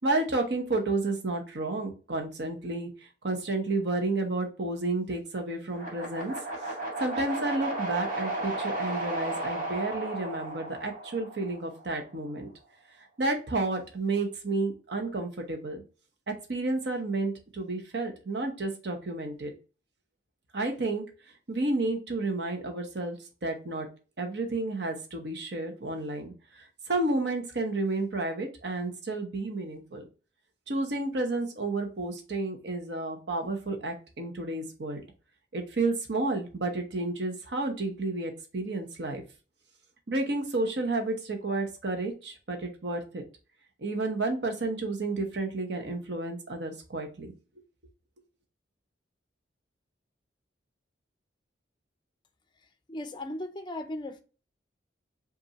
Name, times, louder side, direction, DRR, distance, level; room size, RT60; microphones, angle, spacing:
voice 1, 0.0-2.9 3.2-6.3 7.0-12.5 13.2-15.8 16.3-19.5 20.5-21.0 21.5-23.2 23.4-23.9 24.2-30.0 30.7-35.0 35.5-39.2 40.1-43.2 43.8-47.3, right 2 dB, 65° right, 0.9 m, -31 dB
sound 1, 5.7-11.9, right 2 dB, 50° right, 1.4 m, -34 dB
voice 2, 52.9-54.2, left 1 dB, 25° left, 0.5 m, -36 dB
5.2 x 2.6 x 2.8 m
head